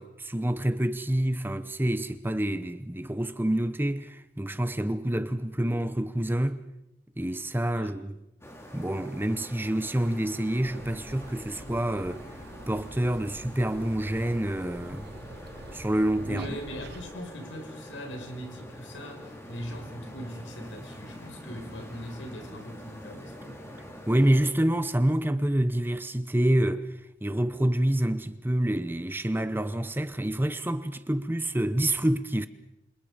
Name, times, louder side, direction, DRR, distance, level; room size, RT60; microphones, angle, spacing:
voice 1, 0.0-6.6 7.2-8.2 8.7-12.3 12.7-15.1 15.7-16.6 24.1-26.9 27.2-32.5, right 1 dB, 10° right, 0.8 m, -27 dB
sound 1, 8.4-24.5, equal, 15° left, 3.2 m, -45 dB
sound 2, 10.6-17.1, right 2 dB, 60° right, 1.3 m, -46 dB
voice 2, 16.2-23.8, equal, 80° left, 5.5 m, -41 dB
27.5 x 27.5 x 5.1 m
head